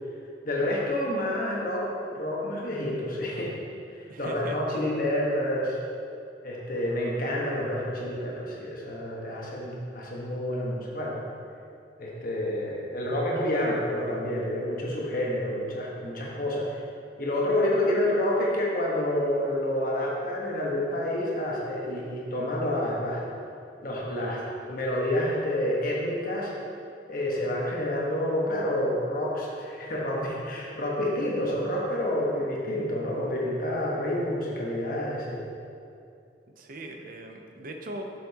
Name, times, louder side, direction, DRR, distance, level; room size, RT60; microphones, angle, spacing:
voice 1, 0.4-3.6 4.2-5.8 6.4-11.1 12.0-16.8 17.2-23.2 23.8-26.5 27.1-35.4, left 1 dB, 50° left, -4 dB, 1.2 m, -28 dB
voice 2, 4.1-4.8 36.6-38.0, right 1 dB, 50° right, 3 dB, 0.6 m, -40 dB
7.4 x 6.8 x 2.8 m, 2.5 s
head